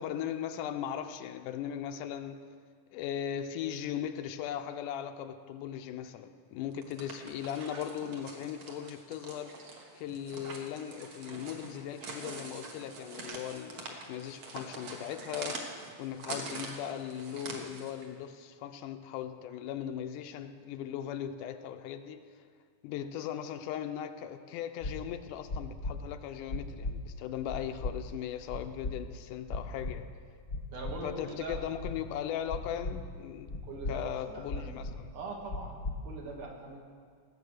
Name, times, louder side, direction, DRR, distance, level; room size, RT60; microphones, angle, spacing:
voice 1, 0.0-2.4 2.9-22.3 22.8-30.1 31.0-33.6 33.9-35.1, left 9 dB, 85° left, 8 dB, 2.2 m, -38 dB
sound 1, 6.7-18.1, right 3 dB, 55° right, 2.1 m, -44 dB
sound 2, 24.8-24.9 25.5-25.9 26.5-26.9 27.5-27.9 28.5-28.9 29.5-29.9 30.5-30.9 31.5-31.9 32.5-32.9 33.5-33.9 34.5-34.9 35.5-35.9, left 2 dB, 40° left, 0.9 m, -35 dB
voice 2, 30.7-31.6 33.6-34.8 35.1-35.8 36.0-36.8, right 3 dB, 75° right, -1 dB, 3.2 m, -42 dB
17.0 x 8.0 x 6.4 m, 2.1 s
omnidirectional pair, 3.7 m